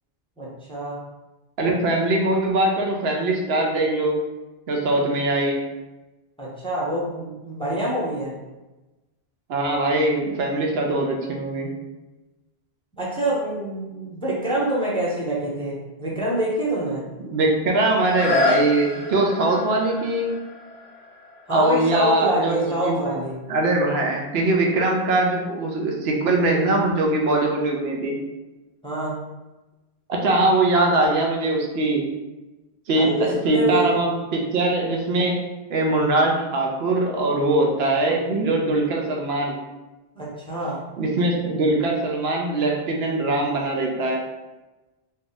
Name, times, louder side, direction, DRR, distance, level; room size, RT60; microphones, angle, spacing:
voice 1, 0.4-1.0 6.4-8.3 13.0-17.0 21.5-23.3 28.8-29.2 33.0-34.0 40.1-40.8, right 1 dB, 5° left, -6 dB, 0.7 m, -26 dB
voice 2, 1.6-4.1 4.7-5.6 9.5-11.7 17.2-20.3 21.5-23.0 23.5-28.2 30.1-32.0 32.9-35.4 35.7-39.6 41.0-44.2, right 2 dB, 80° right, 0 dB, 0.9 m, -22 dB
sound 1, 17.9-23.6 24.2-24.3, left 3 dB, 85° left, 0.8 m, -29 dB
2.6 x 2.4 x 3.9 m, 1.1 s
omnidirectional pair, 1.0 m